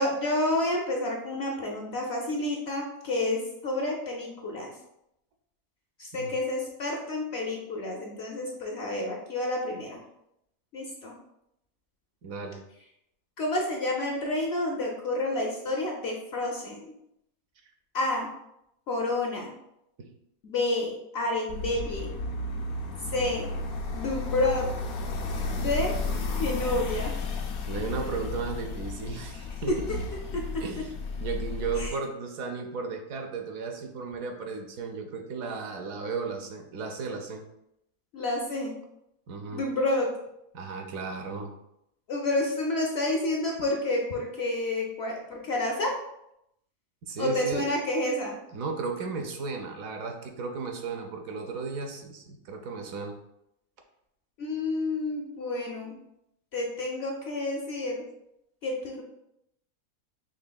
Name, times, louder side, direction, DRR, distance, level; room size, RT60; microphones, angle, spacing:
voice 1, 0.0-4.7 6.0-10.0 10.7-11.1 13.4-16.9 17.9-18.3 18.9-19.5 20.4-22.1 23.1-23.5 23.9-24.7 25.5-25.9 26.4-27.1 30.3-30.4 31.8-31.9 38.1-38.7 39.5-40.1 42.1-45.9 47.2-48.3 54.4-55.9 56.5-58.0 58.6-59.0, left 2 dB, 60° left, 0 dB, 0.7 m, -29 dB
voice 2, 12.2-12.6 20.0-20.1 27.7-29.9 30.6-30.9 31.2-37.4 39.3-39.6 40.5-41.5 47.1-47.7 48.5-53.1, right 4 dB, 70° right, 4 dB, 1.0 m, -35 dB
sound 1, 21.5-31.9, left 3 dB, 80° left, 1.1 m, -33 dB
5.5 x 3.2 x 2.2 m, 0.81 s
omnidirectional pair, 1.5 m